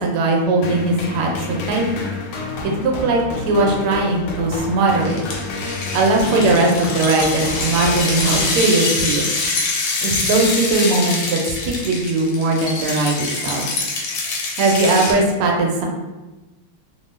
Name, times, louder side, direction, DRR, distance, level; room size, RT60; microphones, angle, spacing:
voice 1, 0.0-2.1 2.6-5.2 5.9-9.3 10.0-13.7 14.6-15.9, right 2 dB, 85° right, 0 dB, 1.6 m, -19 dB
sound 1, 0.6-9.1, left 2 dB, 85° left, 1.5 m, -29 dB
sound 2, 5.0-15.1, left 3 dB, 70° left, 1.0 m, -25 dB
3.7 x 2.2 x 3.0 m, 1.1 s
omnidirectional pair, 2.4 m